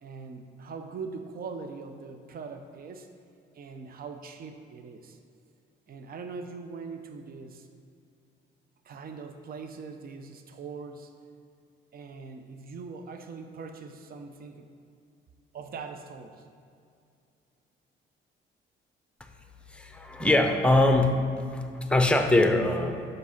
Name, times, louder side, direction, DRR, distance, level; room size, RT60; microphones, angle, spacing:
voice 1, 0.0-3.1 3.5-5.2 5.9-7.7 8.8-11.1 11.9-14.7 15.5-16.4, right 4 dB, 50° right, 7 dB, 0.6 m, -41 dB
voice 2, 19.7-21.2 21.5-23.1, left 2 dB, 5° left, 5 dB, 0.7 m, -23 dB
6.0 x 5.3 x 5.8 m, 2.4 s
cardioid pair, 90°, 20 cm